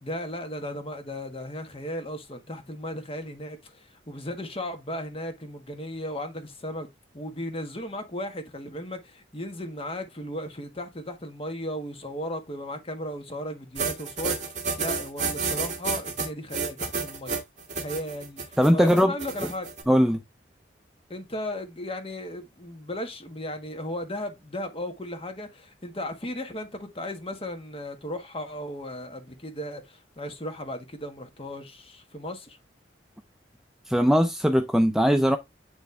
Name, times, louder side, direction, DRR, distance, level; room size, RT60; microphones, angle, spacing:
voice 1, 0.0-6.9 7.1-17.4 17.7-19.7 21.1-32.6, left 1 dB, 35° left, 1.5 m, -36 dB
sound 1, 13.8-19.8, right 4 dB, 40° right, 1.9 m, -30 dB
voice 2, 18.6-19.1 19.9-20.2 33.9-35.4, equal, ahead, 0.4 m, -20 dB
9.6 x 3.4 x 3.3 m
head